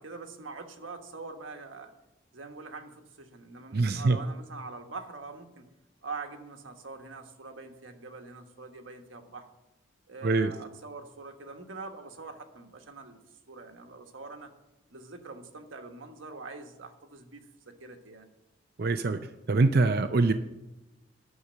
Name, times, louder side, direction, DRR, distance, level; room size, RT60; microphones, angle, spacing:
voice 1, 0.0-1.9 2.3-5.7 6.0-9.5 10.1-13.2 13.5-14.5 14.9-18.3, right 3 dB, 75° right, 4 dB, 1.4 m, -44 dB
voice 2, 3.7-4.2 10.2-10.5 18.8-19.2 19.5-20.3, right 3 dB, 50° right, 8 dB, 0.5 m, -24 dB
11.0 x 6.6 x 7.3 m, 1.0 s
head